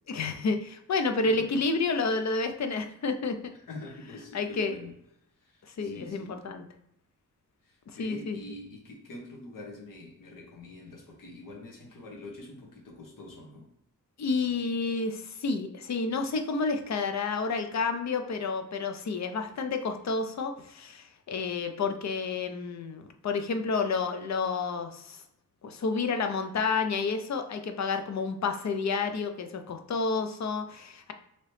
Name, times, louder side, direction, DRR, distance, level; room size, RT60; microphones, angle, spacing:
voice 1, 0.1-3.5 4.3-4.7 5.7-6.7 8.0-8.4 14.2-25.2 25.6-31.1, left 4 dB, 55° left, 7 dB, 0.5 m, -30 dB
voice 2, 3.5-4.9 5.4-6.4 7.6-13.7, left 2 dB, 75° left, 0 dB, 1.0 m, -45 dB
2.9 x 2.8 x 3.1 m, 0.78 s
cardioid pair, 70°, 33 cm